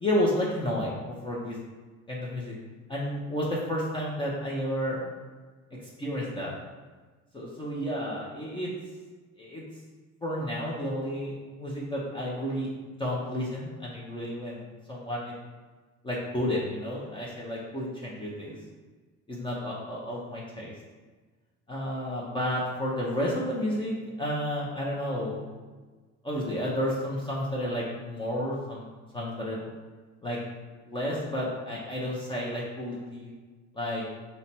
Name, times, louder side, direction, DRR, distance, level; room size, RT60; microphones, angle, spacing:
voice 1, 0.0-1.6 2.1-2.5 2.9-5.0 6.0-6.5 7.3-8.7 9.4-9.6 10.2-12.7 13.0-15.3 16.0-18.6 19.3-20.7 21.7-25.5 26.2-28.9 29.1-29.6 30.2-30.4 30.9-33.3 33.7-34.0, equal, 15° left, -5 dB, 0.6 m, -31 dB
5.6 x 2.2 x 4.1 m, 1.4 s
cardioid pair, 140°, 31 cm